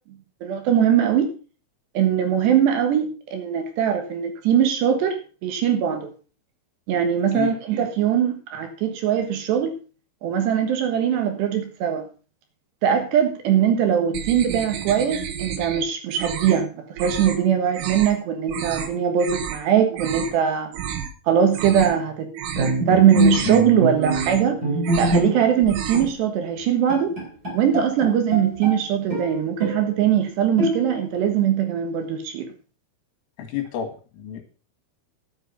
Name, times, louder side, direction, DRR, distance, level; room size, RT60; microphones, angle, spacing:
voice 1, 0.4-1.3 1.9-6.1 6.9-9.7 10.2-12.1 12.8-20.7 21.3-22.3 22.6-24.6 25.0-27.1 27.5-32.5, right 9 dB, 70° right, 6 dB, 3.1 m, -21 dB
sound 1, 14.1-15.8 16.1-16.6 17.0-17.4 17.7-18.1 18.5-18.9 19.2-19.6 19.9-20.4 20.7-21.1 21.4-22.0 22.3-22.8 23.1-23.6 23.9-24.5 24.8-25.3 25.6-26.1, right 9 dB, 85° right, 4.1 m, -31 dB
Bowed string instrument, 22.6-25.6 25.9-26.1 26.6-26.7 26.9-28.8 29.1-29.9 30.6-31.2, right 2 dB, 20° right, 4.1 m, -24 dB
voice 2, 33.4-34.4, left 10 dB, 80° left, 6 dB, 4.4 m, -30 dB
11.0 x 8.4 x 5.7 m, 0.37 s
omnidirectional pair, 5.7 m